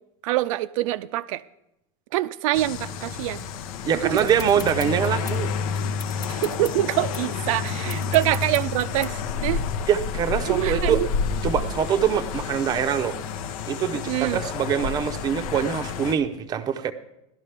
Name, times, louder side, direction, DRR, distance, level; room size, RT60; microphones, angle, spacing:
voice 1, 0.2-1.4 2.1-3.5 4.1-4.2 6.3-9.2 9.4-9.6 10.5-11.1 13.9-14.4, right 16 dB, 65° right, 11 dB, 0.4 m, -25 dB
sound 1, 2.5-16.1, left 6 dB, 75° left, 0.8 m, -30 dB
voice 2, 3.8-5.5 9.9-11.0 11.4-13.2 13.7-16.9, right 8 dB, 20° right, 8 dB, 0.6 m, -24 dB
sound 2, 4.2-9.4, left 4 dB, 20° left, 1.2 m, -42 dB
17.5 x 12.0 x 3.4 m, 0.87 s
supercardioid pair, 160°, 18 cm